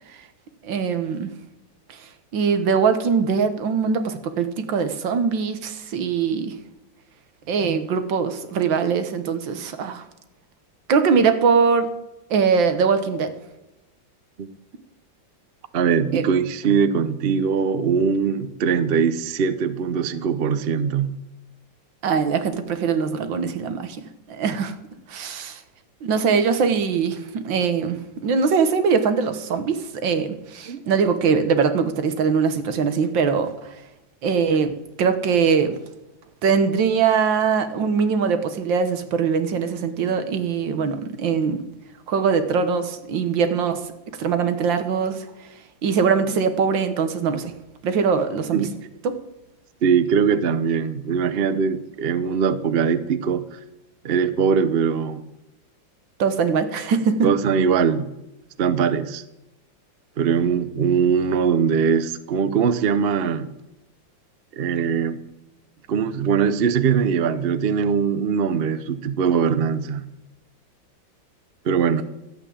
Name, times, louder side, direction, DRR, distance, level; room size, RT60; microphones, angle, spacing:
voice 1, 0.6-1.3 1.9-2.0 2.3-6.6 7.5-10.0 10.9-11.9 12.3-13.3 16.1-16.2 22.0-24.7 25.1-25.6 26.0-33.5 34.2-35.8 36.4-41.6 42.1-43.8 44.2-45.3 45.8-47.5 47.8-48.7 49.0-49.1 56.2-57.3, right 6 dB, 75° right, 9 dB, 1.9 m, -22 dB
voice 2, 15.7-21.1 30.7-30.8 48.5-48.7 49.8-53.6 54.0-55.2 57.2-58.1 58.6-59.2 60.2-63.5 64.6-65.2 65.9-70.1 71.6-72.0, right 6 dB, 55° right, 13 dB, 0.6 m, -21 dB
12.5 x 8.4 x 8.4 m, 0.95 s
omnidirectional pair, 2.1 m